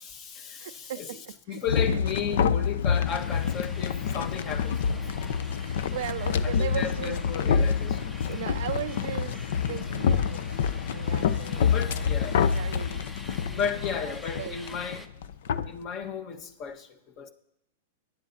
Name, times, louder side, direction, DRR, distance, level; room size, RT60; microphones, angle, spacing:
voice 1, 0.0-1.2 1.5-4.9 6.4-8.1 11.7-12.4 13.3-15.1 15.6-17.3, left 7 dB, 40° left, 1.3 m, -34 dB
voice 2, 0.6-2.0 5.6-7.1 8.3-12.0 12.5-13.1 13.4-13.7 14.0-14.7, right 12 dB, 70° right, 0.3 m, -38 dB
sound 1, 1.7-15.7, left 7 dB, 70° left, 0.5 m, -27 dB
sound 2, 3.1-15.1, left 1 dB, 10° left, 0.6 m, -47 dB
22.5 x 10.5 x 2.7 m
hypercardioid pair, 110°, 0 cm